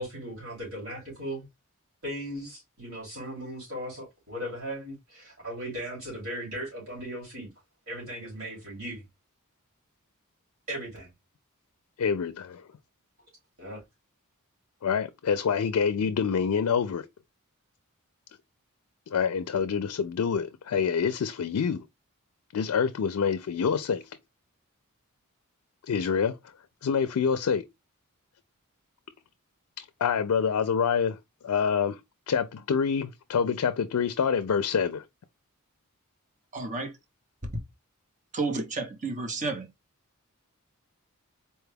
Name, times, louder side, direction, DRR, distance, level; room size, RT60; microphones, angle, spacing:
voice 1, 0.0-1.4 2.0-7.5 7.9-9.0 10.7-11.1 13.6-13.8, equal, 70° right, 2.6 m, -37 dB
voice 2, 12.0-12.6 14.8-17.1 19.1-21.8 22.5-24.0 25.9-26.4 26.8-27.6 30.0-31.2 31.4-32.0 32.3-35.0, left 6 dB, 70° left, 0.4 m, -26 dB
voice 3, 36.5-36.9 38.3-39.7, right 3 dB, 35° right, 0.8 m, -31 dB
4.3 x 2.3 x 3.2 m
head